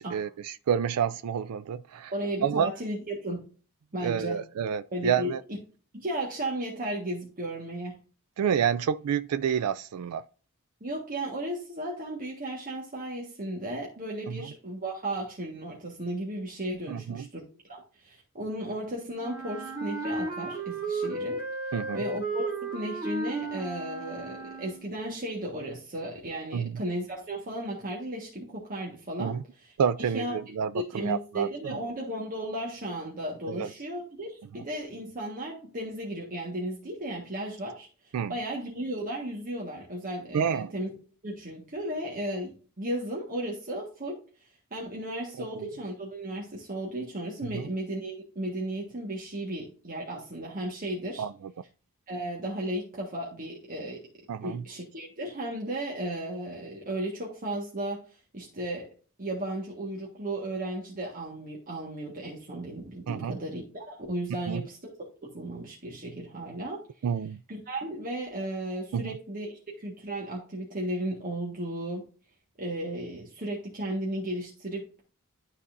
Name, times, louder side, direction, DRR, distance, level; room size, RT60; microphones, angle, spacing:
voice 1, 0.0-2.1 2.4-2.7 4.0-5.4 8.4-10.2 14.3-14.5 16.9-17.3 21.7-22.0 26.5-26.8 29.2-29.4 29.8-31.8 33.5-33.7 34.5-34.6 38.1-38.3 40.3-40.7 45.4-45.7 47.4-47.6 51.2-51.5 54.3-54.6 63.1-63.4 64.5-64.6 67.0-67.4 68.9-69.2, right 7 dB, 90° right, 0.4 m, -29 dB
voice 2, 2.1-3.5 3.9-4.4 4.9-5.3 5.9-8.0 10.8-21.4 21.9-29.3 30.1-30.3 30.7-40.9 41.2-44.2 44.7-51.2 52.1-54.0 54.4-58.9 59.2-64.9 65.2-66.8 67.5-72.1 72.6-75.0, right 1 dB, 40° right, 1.5 m, -35 dB
Wind instrument woodwind instrument, 19.2-25.0, right 2 dB, 20° right, 2.4 m, -34 dB
12.0 x 4.1 x 2.6 m
head